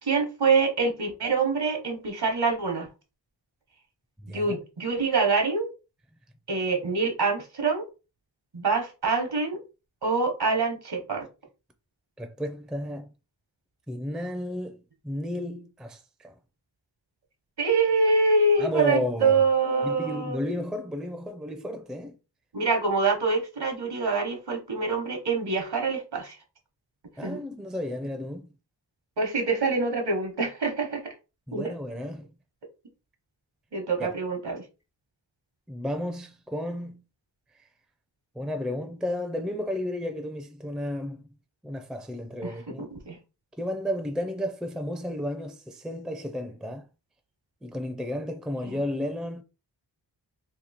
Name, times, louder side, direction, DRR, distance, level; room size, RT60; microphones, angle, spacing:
voice 1, 0.0-2.9 4.3-5.7 6.5-7.8 8.5-9.6 10.0-11.3 17.6-20.4 22.5-26.4 27.2-27.4 29.2-31.0 31.5-31.7 33.7-34.6 42.4-43.2 48.6-48.8, right 4 dB, 65° right, 1.0 m, -25 dB
voice 2, 4.2-4.6 12.2-13.1 13.9-16.3 18.6-19.4 19.8-22.2 27.2-28.5 31.5-32.3 34.0-34.1 35.7-37.0 38.4-41.2 41.6-42.9 43.6-46.9 47.6-49.4, left 1 dB, ahead, 0.4 m, -32 dB
2.9 x 2.7 x 4.0 m
wide cardioid pair, 90°, 42 cm